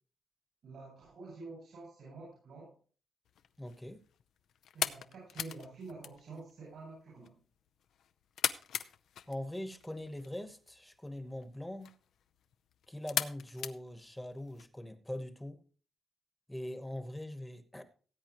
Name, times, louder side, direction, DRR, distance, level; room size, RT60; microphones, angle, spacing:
voice 1, 0.6-2.7 4.7-7.4, right 3 dB, 75° right, -4 dB, 7.7 m, -48 dB
sound 1, 3.3-14.6, left 9 dB, 80° left, 0.6 m, -41 dB
voice 2, 3.6-4.0 9.3-11.9 12.9-15.6 16.5-17.8, left 1 dB, 5° left, 9 dB, 1.2 m, -42 dB
18.5 x 8.5 x 3.0 m, 0.39 s
cardioid pair, 95°, 0 cm